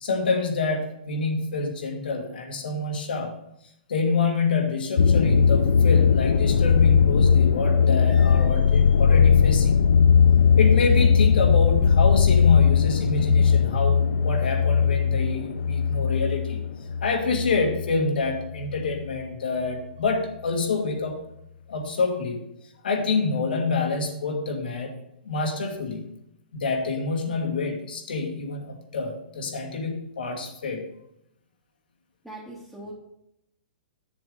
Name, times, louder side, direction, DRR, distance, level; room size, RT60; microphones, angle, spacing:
voice 1, 0.0-3.3 3.9-9.8 10.6-16.6 17.0-21.2 21.7-22.4 22.8-25.0 25.3-26.1 26.5-30.8, left 4 dB, 85° left, 2 dB, 1.8 m, -27 dB
sound 1, 5.0-18.0 18.3-18.9, left 6 dB, 70° left, 0.5 m, -19 dB
voice 2, 32.2-32.9, right 1 dB, ahead, -6 dB, 0.9 m, -40 dB
9.1 x 7.0 x 3.8 m, 0.80 s
hypercardioid pair, 175°, 5 cm